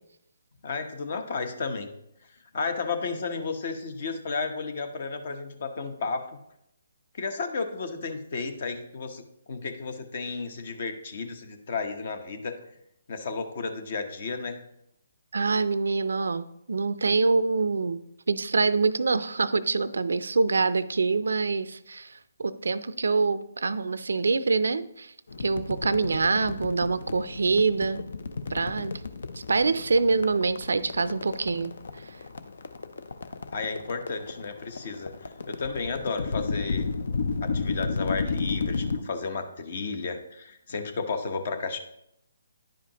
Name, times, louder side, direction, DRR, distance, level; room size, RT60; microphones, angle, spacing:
voice 1, 0.6-1.9 2.5-6.3 7.2-9.2 9.5-12.6 13.1-14.6 33.5-36.9 37.4-41.8, left 4 dB, 55° left, 7 dB, 0.9 m, -33 dB
voice 2, 15.3-18.0 18.3-25.1 25.4-28.0 28.5-29.0 29.5-31.7, right 4 dB, 80° right, 14 dB, 0.4 m, -25 dB
sound 1, 25.3-39.0, left 4 dB, 70° left, 0.6 m, -33 dB
10.0 x 5.0 x 2.9 m, 0.78 s
hypercardioid pair, 150°, 0 cm